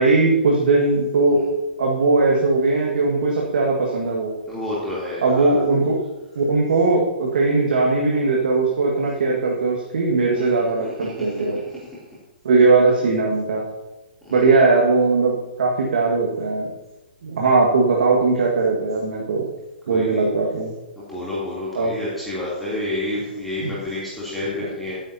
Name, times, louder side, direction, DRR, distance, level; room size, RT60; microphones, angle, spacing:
voice 1, 0.0-1.4 1.8-4.3 5.2-5.9 6.3-11.6 12.4-13.6 14.3-16.7 17.2-19.4 19.9-20.7 21.7-21.9 23.6-23.7, right 3 dB, 65° right, -2 dB, 1.8 m, -19 dB
voice 2, 4.5-5.6 10.3-11.3 14.2-14.6 19.9-20.2 21.0-25.0, left 1 dB, 5° left, -9 dB, 3.2 m, -30 dB
15.0 x 9.6 x 2.9 m, 1.1 s
figure-of-eight pair, 120°, 6 cm